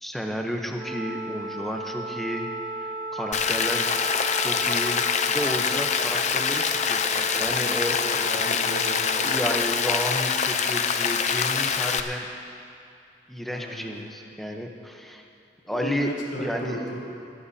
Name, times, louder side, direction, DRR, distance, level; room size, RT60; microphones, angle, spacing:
voice 1, 0.0-2.5 3.1-3.9 4.4-8.0 9.1-12.3 13.3-15.2 15.7-16.1 16.4-16.8, equal, ahead, 2 dB, 0.8 m, -32 dB
Wind instrument woodwind instrument, 0.7-9.9, right 2 dB, 15° right, 2.1 m, -36 dB
Rain, 3.3-12.0, left 6 dB, 40° left, 0.5 m, -25 dB
voice 2, 8.0-9.4 13.5-13.9 15.7-17.0, equal, 90° left, -5 dB, 3.4 m, -34 dB
21.5 x 13.5 x 2.8 m, 2.5 s
head